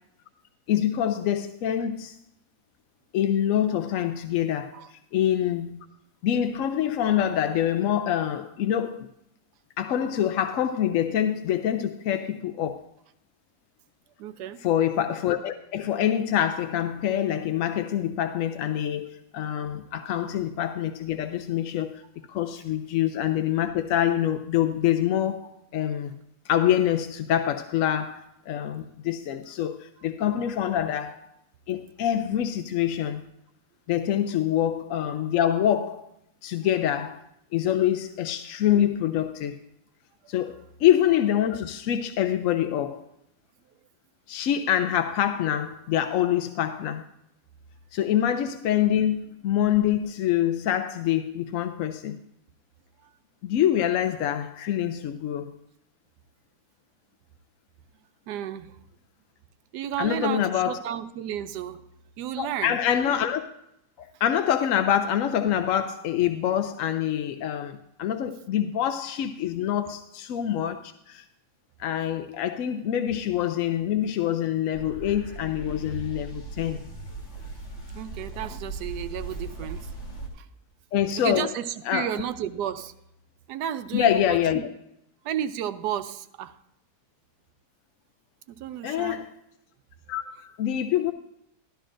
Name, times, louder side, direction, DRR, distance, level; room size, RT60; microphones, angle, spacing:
voice 1, 0.7-2.1 3.1-5.9 6.2-9.1 9.8-12.8 14.6-22.0 22.3-26.1 26.5-31.2 31.7-33.2 33.9-36.0 36.4-37.2 37.5-39.6 40.3-43.1 44.3-47.0 47.9-52.2 53.4-55.5 60.0-60.8 62.4-63.4 64.0-71.2 71.8-76.8 80.9-81.5 81.9-82.1 83.9-84.7 88.8-89.3 90.1-91.1, left 10 dB, 70° left, 0.8 m, -25 dB
voice 2, 14.2-14.6 53.0-53.1 58.3-58.8 59.7-61.8 62.2-62.8 77.9-80.0 80.3-80.5 81.2-82.9 83.5-84.4 85.2-86.5 88.5-89.2, right 10 dB, 85° right, 1.2 m, -32 dB
sound 1, 74.7-80.3, right 2 dB, 50° left, 2.1 m, -38 dB
12.5 x 12.5 x 2.5 m
omnidirectional pair, 1.7 m